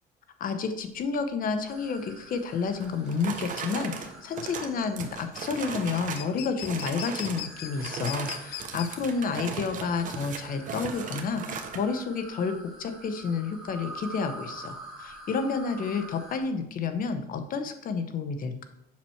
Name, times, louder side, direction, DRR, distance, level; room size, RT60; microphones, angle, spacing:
voice 1, 0.4-18.7, left 5 dB, 55° left, 9 dB, 1.0 m, -30 dB
sound 1, 0.8-17.1, left 12 dB, 80° left, 0.6 m, -44 dB
sound 2, 1.7-16.4, right 2 dB, 5° right, 2.0 m, -47 dB
sound 3, 2.8-6.3 6.6-7.4 7.8-11.8, right 6 dB, 50° right, 1.1 m, -37 dB
7.4 x 6.0 x 4.5 m, 0.83 s
cardioid pair, 110°, 17 cm